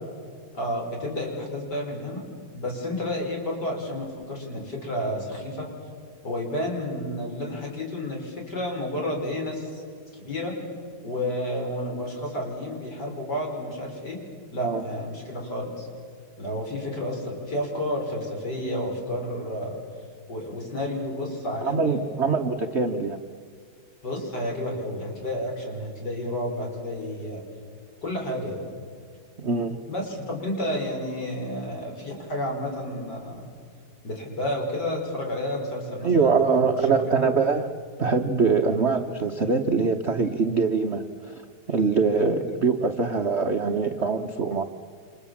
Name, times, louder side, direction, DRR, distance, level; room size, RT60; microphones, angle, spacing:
voice 1, 0.5-2.2 2.5-5.7 6.2-9.8 10.1-10.5 11.0-14.2 14.5-15.9 16.4-19.8 20.3-22.3 24.0-27.4 28.0-28.6 29.9-33.5 34.0-36.7 37.0-37.3 38.7-38.8 42.1-42.3, left 1 dB, 50° left, 0 dB, 6.2 m, -31 dB
voice 2, 21.6-23.2 29.4-29.8 36.0-37.7 38.0-41.4 41.7-44.6, right 4 dB, 40° right, 5 dB, 1.0 m, -23 dB
29.5 x 27.0 x 7.3 m, 2.1 s
omnidirectional pair, 2.4 m